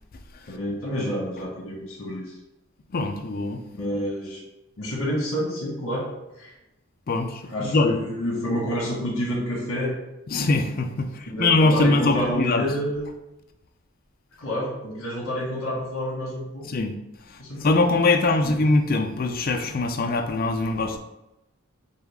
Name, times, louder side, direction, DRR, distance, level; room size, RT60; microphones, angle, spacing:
voice 1, 0.4-2.4 3.7-4.4 4.8-6.1 6.4-6.5 7.4-9.9 11.3-13.1 14.4-16.7 17.4-17.7 18.4-18.6, equal, 80° left, -5 dB, 1.3 m, -28 dB
voice 2, 2.9-3.6 7.1-8.0 10.3-12.7 16.6-17.0 17.3-21.0, left 2 dB, 45° left, 5 dB, 0.4 m, -22 dB
5.1 x 2.4 x 3.4 m, 0.93 s
head